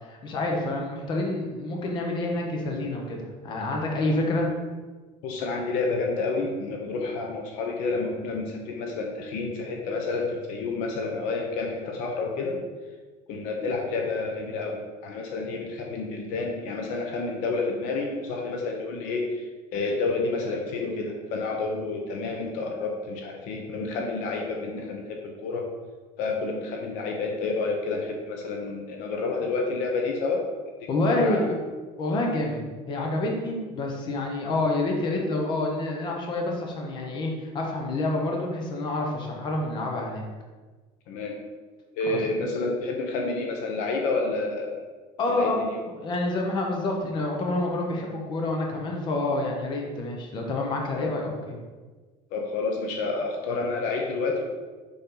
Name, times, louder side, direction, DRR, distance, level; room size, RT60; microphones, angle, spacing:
voice 1, 0.0-3.2 3.4-4.5 30.9-31.5 32.0-32.6 32.9-40.2 42.0-42.2 45.2-45.6 46.0-51.5, left 2 dB, 30° left, 0 dB, 1.1 m, -28 dB
voice 2, 5.2-12.6 13.3-19.5 19.7-25.7 26.2-30.4 31.2-31.6 41.1-41.3 42.0-44.8 45.3-45.8 51.0-51.1 52.3-54.4, left 3 dB, 60° left, 1 dB, 1.0 m, -29 dB
6.9 x 5.6 x 3.9 m, 1.3 s
cardioid pair, 180°, 15 cm